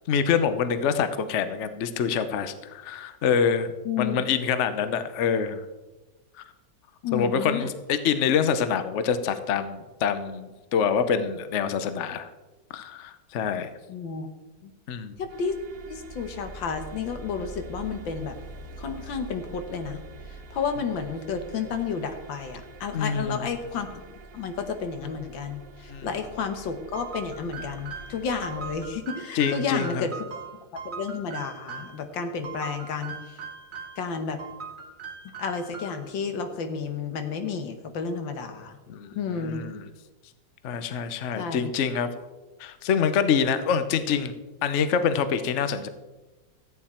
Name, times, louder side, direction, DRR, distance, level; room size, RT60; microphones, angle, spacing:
voice 1, 0.1-5.6 6.4-6.5 7.1-12.3 12.7-13.7 14.9-15.1 22.9-23.5 25.9-26.1 29.3-30.1 38.9-39.8 40.6-42.1 42.6-44.3 44.6-45.9, left 7 dB, 55° left, 10 dB, 0.9 m, -26 dB
voice 2, 3.9-4.2 7.0-7.7 13.9-14.3 14.6-14.7 15.2-15.6 15.9-18.4 18.8-20.0 20.3-24.0 24.3-30.3 30.9-33.4 34.0-34.4 35.4-38.8 39.1-39.6 41.4-41.7, left 6 dB, 85° left, 7 dB, 1.9 m, -31 dB
sound 1, 15.1-28.9, right 1 dB, 55° right, 1.3 m, -45 dB
sound 2, 26.9-32.0 32.4-34.1 34.4-36.1, right 5 dB, 35° right, 1.6 m, -40 dB
14.0 x 8.8 x 4.3 m, 1.2 s
omnidirectional pair, 2.0 m